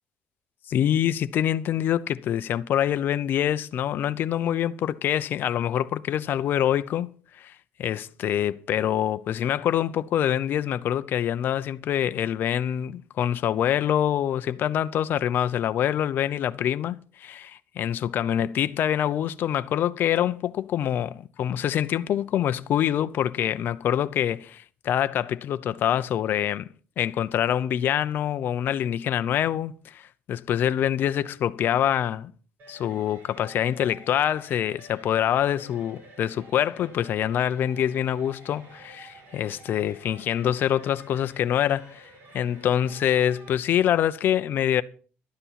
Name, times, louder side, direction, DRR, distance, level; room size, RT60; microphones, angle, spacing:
voice 1, 0.7-7.1 7.4-7.5 7.8-26.7 27.0-30.0 30.3-32.3 32.7-44.8, left 10 dB, 50° left, 0.7 m, -25 dB
sound 1, 32.6-43.5, right 2 dB, 55° right, 7.1 m, -50 dB
12.5 x 9.7 x 5.8 m
cardioid pair, 135°, 4 cm